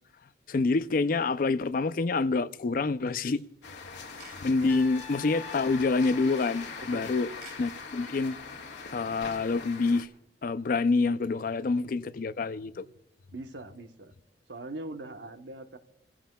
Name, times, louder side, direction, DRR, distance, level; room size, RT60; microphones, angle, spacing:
voice 1, 0.5-3.4 4.4-7.3 7.6-8.4 8.9-10.1 10.4-12.9, left 3 dB, 50° left, 0.4 m, -27 dB
sound 1, 3.0-3.5 4.0-4.4 6.2-6.6 7.2-7.6, right 5 dB, 50° right, 2.4 m, -53 dB
sound 2, 3.6-10.0, left 5 dB, 85° left, 1.8 m, -42 dB
Trumpet, 4.6-7.6, left 5 dB, 10° left, 7.0 m, -47 dB
voice 2, 6.8-7.2 13.3-14.1 14.5-15.8, right 2 dB, 75° right, 1.0 m, -41 dB
27.5 x 15.5 x 2.3 m
head